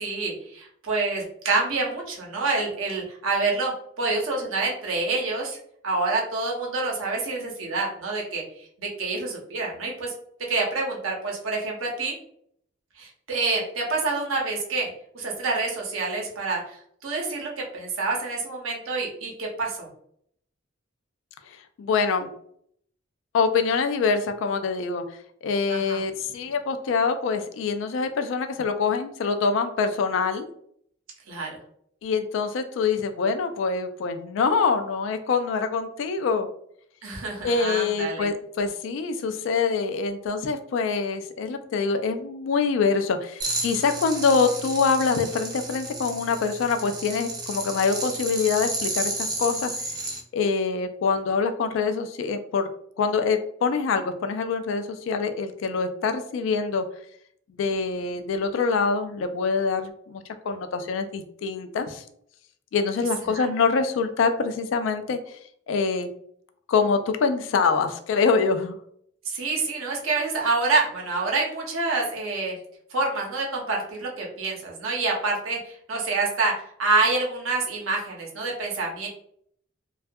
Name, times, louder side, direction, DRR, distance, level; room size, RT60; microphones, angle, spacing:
voice 1, 0.0-5.6 5.8-10.1 10.5-12.2 13.0-19.9 25.7-26.0 31.3-31.5 37.0-38.3 63.3-63.5 69.2-72.6 72.9-79.1, right 3 dB, 90° right, -1 dB, 0.7 m, -27 dB
voice 2, 21.5-22.3 23.3-25.0 25.4-30.5 32.0-36.5 37.4-49.7 50.3-52.7 53.0-56.9 57.6-62.0 62.7-65.4 65.7-66.1 66.7-68.8, left 5 dB, 70° left, 8 dB, 0.3 m, -25 dB
sound 1, 43.4-50.2, right 2 dB, 20° right, 0.4 m, -32 dB
2.6 x 2.3 x 2.2 m, 0.67 s
head